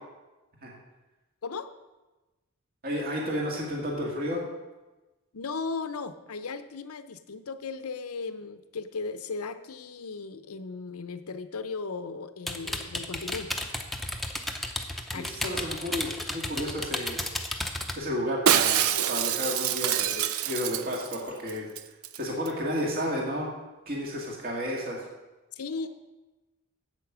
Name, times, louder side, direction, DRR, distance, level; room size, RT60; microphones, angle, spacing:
voice 1, 2.8-4.4 15.1-17.3 18.0-21.7 22.1-23.5 23.9-25.0, equal, 45° right, -2 dB, 2.0 m, -32 dB
voice 2, 5.3-13.5 15.1-15.3 25.5-25.9, left 4 dB, 90° left, 11 dB, 0.7 m, -36 dB
sound 1, 12.5-18.0, left 1 dB, ahead, 0.7 m, -33 dB
Shatter, 18.5-21.2 21.5-21.6 21.8-22.2 22.4-22.5, right 10 dB, 75° right, 0.5 m, -26 dB
8.4 x 8.2 x 6.1 m, 1.1 s
head